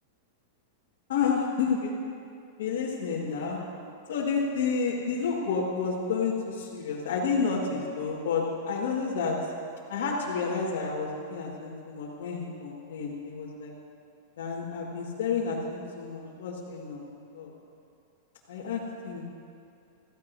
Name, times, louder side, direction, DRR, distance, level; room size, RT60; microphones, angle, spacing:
voice 1, 1.1-1.9 2.6-3.6 4.1-9.4 9.9-13.7 14.4-17.0 17.3-17.5 18.5-19.3, left 5 dB, 85° left, -5 dB, 1.9 m, -30 dB
16.0 x 14.5 x 2.7 m, 2.5 s
supercardioid pair, 175°, 0 cm